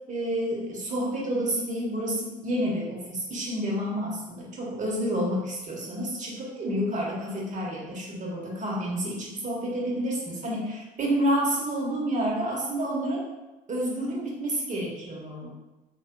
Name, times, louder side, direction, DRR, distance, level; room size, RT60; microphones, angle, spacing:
voice 1, 0.1-13.2 13.7-15.5, equal, 35° right, -3 dB, 1.3 m, -29 dB
3.9 x 3.3 x 2.2 m, 1.1 s
hypercardioid pair, 65°, 21 cm